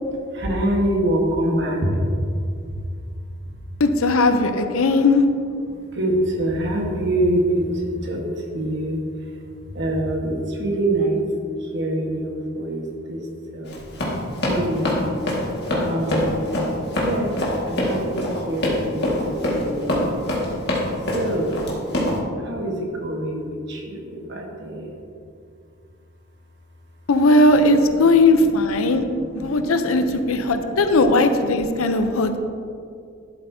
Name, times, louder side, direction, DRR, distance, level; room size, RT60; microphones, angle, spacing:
voice 1, 0.0-2.0 2.7-2.8 5.7-9.4 9.7-11.3 11.6-13.3 13.5-13.8 14.4-15.1 15.4-16.5 17.0-17.3 17.6-20.1 21.1-21.7 22.4-25.0 28.8-29.6 30.1-30.7 31.7-31.8, right 1 dB, 55° right, 0 dB, 1.3 m, -25 dB
voice 2, 3.8-5.2 27.1-29.0 29.3-32.4, left 2 dB, 80° left, 8 dB, 0.6 m, -18 dB
Run, 13.6-22.2, left 1 dB, 50° left, 1.8 m, -24 dB
11.5 x 7.7 x 2.7 m, 2.4 s
head